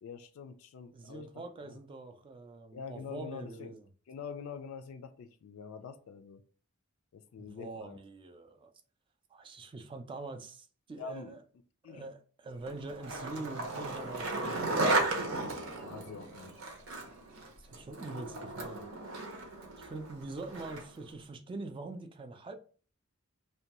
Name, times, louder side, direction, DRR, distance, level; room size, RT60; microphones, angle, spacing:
voice 1, 0.0-1.3 1.6-1.8 2.7-3.7 4.1-6.4 7.1-8.0 11.0-11.3 11.8-12.1 15.8-16.5, left 5 dB, 75° left, 0.3 m, -45 dB
voice 2, 0.9-3.9 7.4-8.7 9.3-11.4 11.9-15.0 17.6-18.8 19.8-22.5, right 2 dB, 25° right, 0.3 m, -44 dB
Skateboard, 12.7-21.0, right 2 dB, 70° right, 0.7 m, -35 dB
2.6 x 2.2 x 2.9 m
head